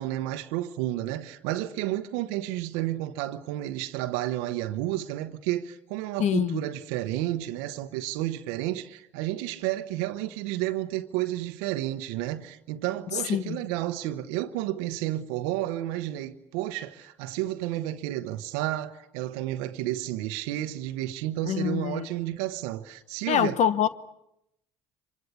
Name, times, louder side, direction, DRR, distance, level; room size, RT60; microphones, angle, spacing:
voice 1, 0.0-23.6, right 14 dB, 80° right, 1.0 m, -31 dB
voice 2, 6.2-6.6 13.3-13.6 21.4-22.1 23.3-23.9, left 9 dB, 60° left, 0.9 m, -25 dB
25.5 x 22.5 x 8.4 m
hypercardioid pair, 65°, 14 cm